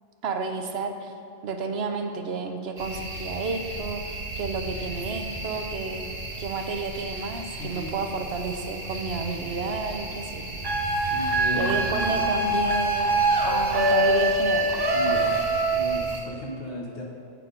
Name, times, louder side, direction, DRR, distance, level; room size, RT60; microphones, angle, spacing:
voice 1, 0.2-1.1 1.4-6.1 6.4-10.5 11.5-13.1 13.4-14.7, right 4 dB, 65° right, 5 dB, 0.8 m, -31 dB
sound 1, 2.8-16.2, right 2 dB, 80° right, 1.8 m, -36 dB
voice 2, 7.6-7.9 11.1-12.3 14.9-15.3 15.7-17.0, left 1 dB, 55° left, -3 dB, 1.1 m, -35 dB
sound 2, 10.6-16.2, right 2 dB, 30° right, 0.5 m, -24 dB
8.4 x 4.8 x 5.2 m, 2.4 s
omnidirectional pair, 1.3 m